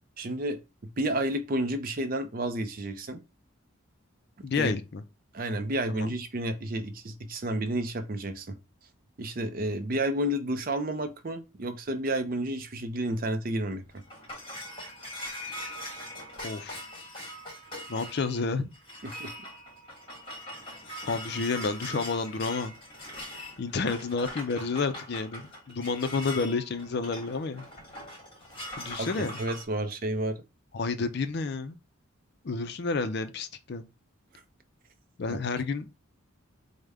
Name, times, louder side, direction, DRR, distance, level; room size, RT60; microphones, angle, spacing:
voice 1, 0.2-0.6 1.0-3.2 4.6-4.7 5.3-8.6 9.2-14.0 19.0-19.3 29.0-30.4 35.3-35.4, right 1 dB, 40° right, 0.5 m, -31 dB
voice 2, 4.4-5.0 5.9-6.1 16.4-16.8 17.9-18.7 21.1-22.8 23.6-25.4 25.7-27.7 28.8-29.4 30.7-31.8 32.4-33.9 35.2-35.9, left 4 dB, 50° left, 0.4 m, -30 dB
sound 1, 13.7-29.6, left 1 dB, 20° left, 1.2 m, -42 dB
4.9 x 2.1 x 3.4 m
head